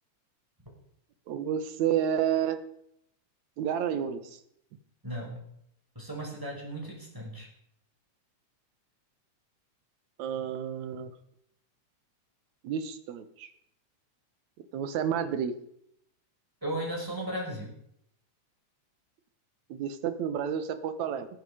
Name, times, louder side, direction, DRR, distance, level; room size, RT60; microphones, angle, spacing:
voice 1, 1.3-2.6 3.6-4.4 10.2-11.1 12.6-13.5 14.7-15.5 19.7-21.3, right 9 dB, 75° right, 9 dB, 2.5 m, -30 dB
voice 2, 5.0-5.4 5.9-7.5 16.6-17.7, right 1 dB, 5° right, -1 dB, 5.0 m, -35 dB
19.0 x 10.0 x 4.9 m, 0.72 s
omnidirectional pair, 3.4 m